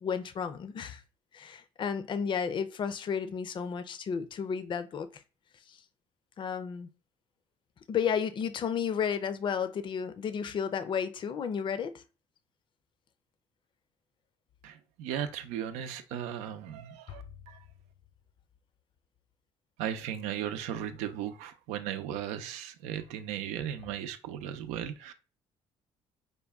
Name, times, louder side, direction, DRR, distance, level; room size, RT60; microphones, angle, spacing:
voice 1, 0.0-1.0 1.3-5.2 5.7-5.8 6.4-6.9 7.9-12.0 17.1-17.2, left 7 dB, 45° left, 0.5 m, -32 dB
voice 2, 14.6-17.7 19.8-25.1, right 10 dB, 90° right, 0.6 m, -36 dB
5.2 x 2.2 x 3.4 m
supercardioid pair, 85°, 12 cm